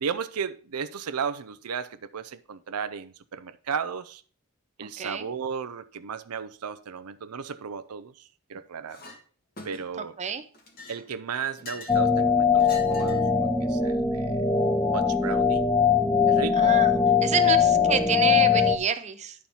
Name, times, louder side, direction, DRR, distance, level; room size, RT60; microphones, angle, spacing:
voice 1, 0.0-4.2 4.8-9.0 9.6-10.2 10.9-14.4 14.9-15.6 16.3-16.8 17.4-17.6, right 6 dB, 90° right, 0.6 m, -34 dB
Chink clink, 8.9-9.2 9.6-10.1 10.5-12.0 12.6-13.3, left 3 dB, 45° left, 1.8 m, -44 dB
sound 1, 11.9-18.8, left 6 dB, 10° left, 0.6 m, -21 dB
voice 2, 16.6-16.9 17.2-19.3, right 6 dB, 30° right, 0.7 m, -28 dB
10.5 x 4.4 x 5.5 m
head